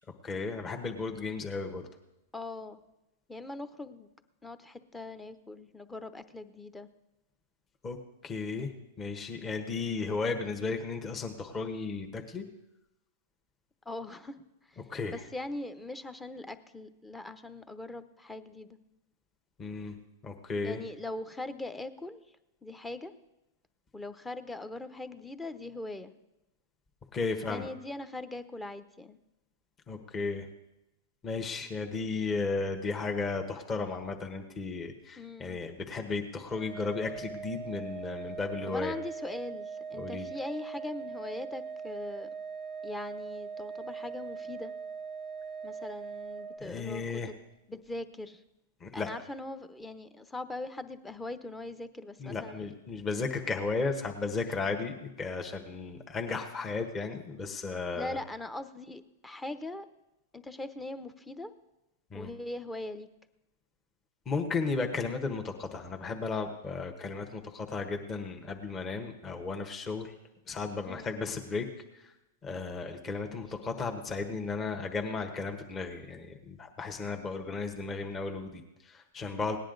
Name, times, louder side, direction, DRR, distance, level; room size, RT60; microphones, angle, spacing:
voice 1, 0.2-1.9 7.8-8.0 8.2-8.7 9.0-12.4 14.9-15.2 19.6-20.0 20.2-20.8 27.1-27.7 29.9-30.5 31.2-38.9 40.0-40.3 46.6-47.3 48.8-49.1 52.2-58.2 62.1-62.3 64.2-70.1 70.5-71.7 71.9-72.1 72.4-79.6, left 4 dB, 25° left, 4 dB, 1.3 m, -34 dB
voice 2, 2.3-2.8 3.3-4.1 4.4-6.9 13.9-14.8 15.1-18.8 20.6-22.2 22.6-23.1 23.9-26.1 27.5-29.2 35.2-35.6 38.7-42.3 42.8-44.7 45.6-47.4 47.7-48.4 48.9-52.7 57.9-59.9 60.3-61.5 62.1-63.1 70.9-71.2, left 2 dB, 10° left, 11 dB, 0.8 m, -41 dB
Organ, 36.5-47.2, right 6 dB, 35° right, 0.5 m, -41 dB
18.0 x 10.0 x 4.0 m, 0.93 s
hypercardioid pair, 115°, 0 cm